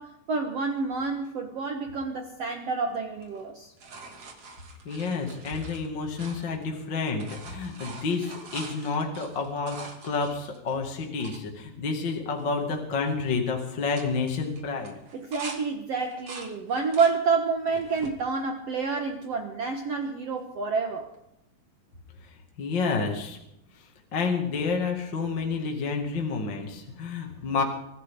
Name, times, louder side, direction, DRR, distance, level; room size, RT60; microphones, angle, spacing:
voice 1, 0.0-3.7 15.1-21.1, right 4 dB, 75° right, 4 dB, 1.4 m, -28 dB
sound 1, 3.1-6.8 7.1-11.4 12.0-12.1 12.3-12.8 13.0-13.4 13.8-15.6 16.0-17.2 17.7-18.2 18.8-19.5 21.1-21.2, right 3 dB, 40° right, 3.1 m, -44 dB
voice 2, 4.8-14.9 22.6-23.4 24.1-27.6, left 4 dB, 35° left, 1 dB, 2.2 m, -29 dB
24.5 x 15.0 x 3.8 m, 0.83 s
omnidirectional pair, 4.9 m